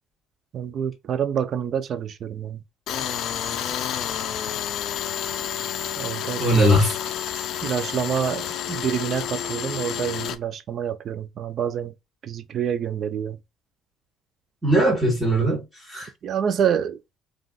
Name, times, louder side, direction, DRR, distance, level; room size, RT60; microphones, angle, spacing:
voice 1, 0.5-2.6 6.0-6.4 7.6-11.9 12.2-13.4 16.2-17.0, right 8 dB, 40° right, 0.4 m, -27 dB
Tools, 2.9-10.4, left 9 dB, 55° left, 0.4 m, -30 dB
voice 2, 6.4-7.0 14.6-16.1, equal, 5° right, 1.2 m, -20 dB
3.8 x 2.4 x 2.2 m
cardioid pair, 165°, 0 cm